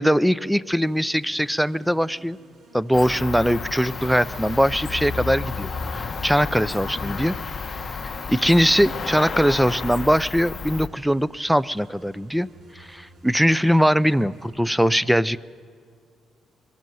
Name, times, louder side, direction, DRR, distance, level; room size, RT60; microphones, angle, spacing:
voice 1, 0.0-2.4 2.7-7.4 8.3-12.5 12.8-15.4, equal, ahead, 19 dB, 0.5 m, -21 dB
sound 1, 0.8-14.5, right 2 dB, 65° right, 7.0 m, -52 dB
Cricket, 2.9-10.9, left 5 dB, 40° left, 1.2 m, -32 dB
sound 2, 3.9-9.1, right 2 dB, 25° right, 1.6 m, -48 dB
22.5 x 17.5 x 7.7 m, 2.2 s
cardioid pair, 90°, 0 cm